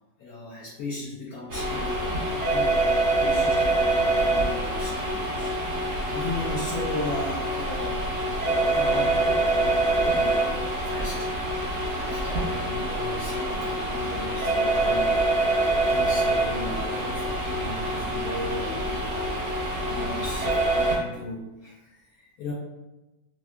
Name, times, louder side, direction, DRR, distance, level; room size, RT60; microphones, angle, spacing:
voice 1, 0.2-22.5, left 2 dB, 70° left, -5 dB, 0.9 m, -37 dB
sound 1, 1.5-21.0, right 2 dB, 55° right, 0.8 m, -25 dB
3.4 x 2.6 x 2.2 m, 1.0 s
omnidirectional pair, 1.9 m